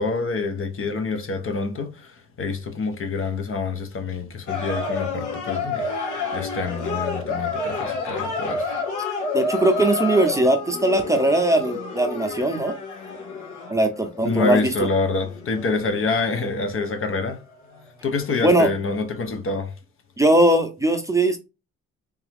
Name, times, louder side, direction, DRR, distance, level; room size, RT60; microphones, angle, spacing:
voice 1, 0.0-8.8 14.2-17.4 18.0-19.7, left 3 dB, 45° left, 0.9 m, -27 dB
sound 1, 4.5-17.9 18.1-18.3, left 3 dB, 80° left, 1.6 m, -30 dB
voice 2, 9.3-12.7 13.7-14.6 18.4-18.7 20.2-21.4, right 1 dB, 10° right, 0.7 m, -19 dB
3.5 x 3.1 x 3.5 m
cardioid pair, 90°, 30 cm